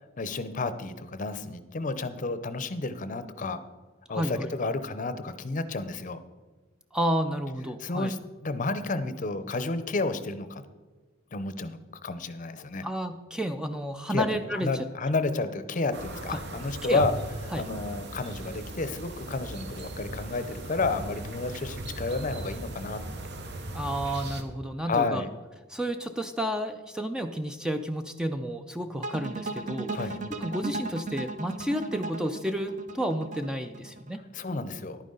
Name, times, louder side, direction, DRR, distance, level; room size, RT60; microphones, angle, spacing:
voice 1, 0.2-3.6 4.1-6.2 7.8-10.6 11.3-12.9 14.1-14.3 14.5-17.1 17.5-23.3 24.9-25.3 29.9-30.2 34.3-35.0, left 3 dB, 40° left, 12 dB, 0.6 m, -31 dB
voice 2, 4.1-4.5 6.9-8.1 12.8-14.9 16.3-16.4 16.8-17.0 17.5-17.6 23.7-25.2 25.7-29.9 30.4-34.2, equal, 5° right, 7 dB, 0.4 m, -31 dB
sound 1, 15.9-24.4, right 1 dB, 55° right, 1.0 m, -38 dB
sound 2, 29.0-34.1, right 3 dB, 40° right, 0.7 m, -36 dB
11.0 x 9.4 x 3.8 m, 1.3 s
head